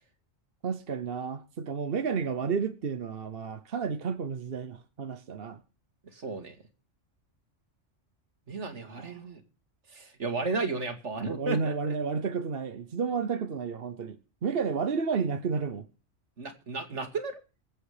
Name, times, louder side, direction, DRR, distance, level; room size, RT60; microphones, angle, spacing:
voice 1, 0.6-5.6 8.9-9.1 11.4-14.2 14.4-15.9, right 5 dB, 55° right, 1.1 m, -31 dB
voice 2, 6.1-6.6 8.5-9.4 9.9-11.7 16.4-17.4, right 3 dB, 70° right, 2.4 m, -33 dB
23.5 x 8.1 x 4.9 m
omnidirectional pair, 1.3 m